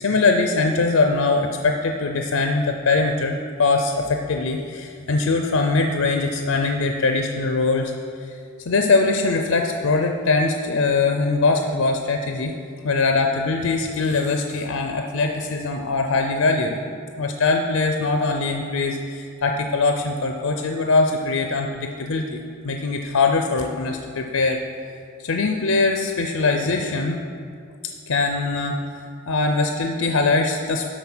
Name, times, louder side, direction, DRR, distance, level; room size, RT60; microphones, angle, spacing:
voice 1, 0.0-7.9 8.2-8.3 8.7-12.5 12.8-16.8 17.2-24.6 25.2-27.2 28.1-28.8 29.3-30.9, left 3 dB, 70° left, 4 dB, 0.5 m, -22 dB
11.5 x 4.1 x 6.0 m, 2.2 s
head